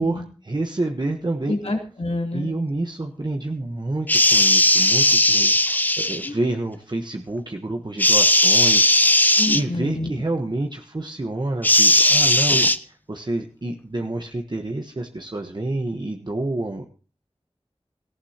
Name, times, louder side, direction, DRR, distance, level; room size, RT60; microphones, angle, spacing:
voice 1, 0.0-1.6 2.3-5.6 6.0-8.9 9.4-16.8, right 2 dB, 45° right, 3 dB, 1.2 m, -28 dB
voice 2, 1.5-2.5 6.2-6.3 9.4-10.1, left 2 dB, 80° left, 0 dB, 3.4 m, -27 dB
sound 1, 4.1-6.3 8.0-9.6 11.6-12.8, left 1 dB, 15° left, 0.7 m, -17 dB
18.0 x 15.0 x 2.9 m, 0.37 s
wide cardioid pair, 45°, 11 cm